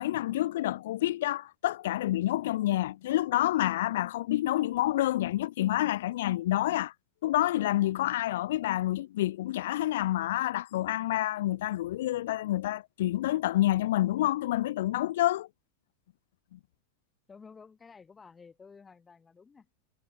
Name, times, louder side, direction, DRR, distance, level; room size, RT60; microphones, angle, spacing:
voice 1, 0.0-6.9 7.2-15.5 16.5-16.6, left 14 dB, 70° left, 0.9 m, -28 dB
voice 2, 17.3-19.7, left 5 dB, 20° left, 7.8 m, -53 dB
hypercardioid pair, 105°, 0 cm